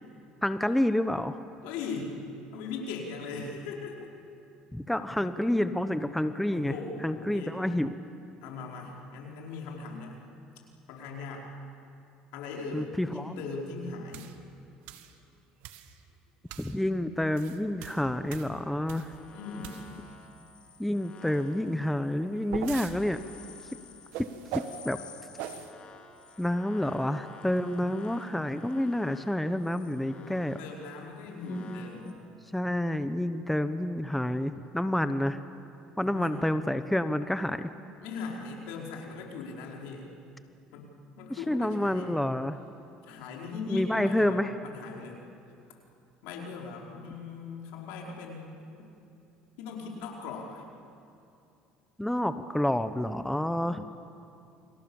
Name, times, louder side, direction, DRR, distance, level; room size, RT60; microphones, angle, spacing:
voice 1, 0.4-1.4 4.7-6.7 7.0-7.9 12.7-13.4 16.6-19.1 20.8-23.2 24.5-25.0 26.4-30.6 31.5-32.1 32.5-35.4 36.0-37.7 41.3-42.6 43.7-44.5 52.0-53.9, left 1 dB, 5° left, 10 dB, 1.0 m, -29 dB
voice 2, 1.6-2.2 2.5-4.1 6.5-7.5 8.4-10.2 10.9-11.5 12.3-14.3 19.3-19.9 30.1-32.2 36.0-36.5 38.0-40.1 40.7-42.1 43.0-45.2 46.2-48.5 49.6-50.6, left 4 dB, 80° left, 0 dB, 4.7 m, -39 dB
sound 1, 14.1-14.3 14.9-15.1 15.6-15.9 16.5-16.8 17.2-19.2 19.6-20.1 22.0-23.0 24.1-24.8 25.4-25.7, right 11 dB, 75° right, 1.7 m, -41 dB
sound 2, 18.9-32.1, left 5 dB, 40° left, 3.9 m, -52 dB
29.0 x 24.0 x 7.2 m, 2.7 s
supercardioid pair, 95°, 3 cm